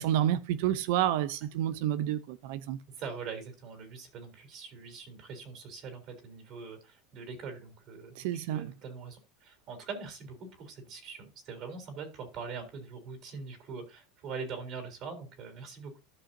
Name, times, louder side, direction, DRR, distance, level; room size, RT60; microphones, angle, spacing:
voice 1, 0.0-2.8 8.1-8.7, right 11 dB, 70° right, 0.7 m, -29 dB
voice 2, 3.0-8.2 8.5-15.9, right 5 dB, 50° right, 3.6 m, -43 dB
13.0 x 5.8 x 2.7 m
supercardioid pair, 115°, 0 cm